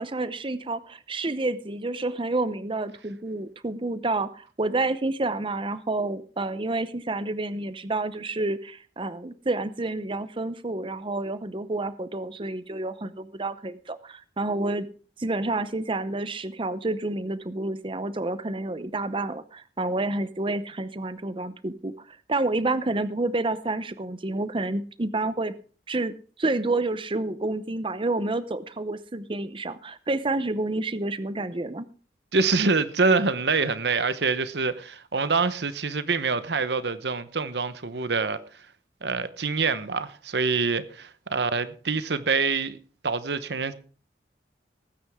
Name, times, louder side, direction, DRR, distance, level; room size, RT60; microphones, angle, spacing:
voice 1, 0.0-14.9 15.2-21.9 22.3-25.5 25.9-31.8, right 2 dB, 30° right, 0.7 m, -29 dB
voice 2, 32.3-38.4 39.0-42.8 43.0-43.7, right 4 dB, 70° right, 1.0 m, -25 dB
19.0 x 9.4 x 3.6 m
head